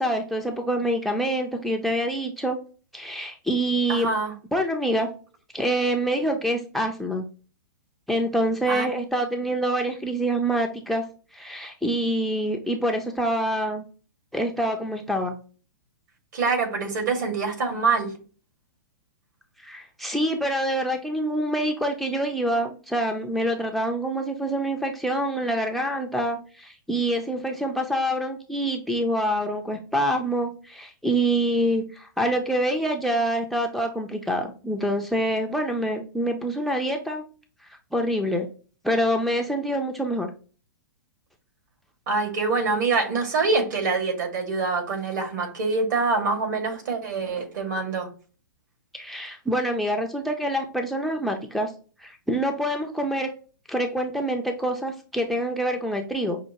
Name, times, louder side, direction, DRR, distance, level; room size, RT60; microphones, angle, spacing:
voice 1, 0.0-2.6 2.9-4.1 4.5-5.1 5.5-7.2 8.1-11.0 11.3-13.9 14.3-15.3 19.6-37.2 37.7-38.5 38.8-40.3 48.9-51.7 52.0-53.3 53.7-56.4, right 1 dB, ahead, 4 dB, 0.4 m, -26 dB
voice 2, 3.9-4.3 8.7-8.9 16.3-18.2 42.1-48.1, right 4 dB, 65° right, 2 dB, 1.9 m, -25 dB
5.6 x 2.5 x 2.9 m, 0.37 s
hypercardioid pair, 135°, 11 cm